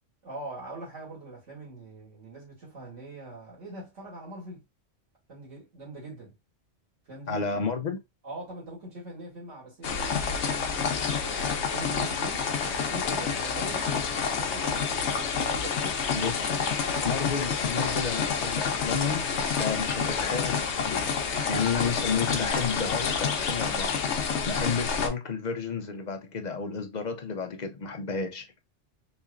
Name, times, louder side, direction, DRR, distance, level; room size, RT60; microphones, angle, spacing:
voice 1, 0.2-4.6 5.3-6.3 7.1-7.6 8.2-11.4 11.7-16.0 16.5-17.2, right 2 dB, 75° right, 2.3 m, -42 dB
voice 2, 7.3-8.0 16.1-16.5 17.0-24.0 24.5-28.6, left 5 dB, 45° left, 0.6 m, -31 dB
sound 1, 9.8-25.1, left 6 dB, 70° left, 1.0 m, -28 dB
4.1 x 3.0 x 2.5 m
omnidirectional pair, 1.3 m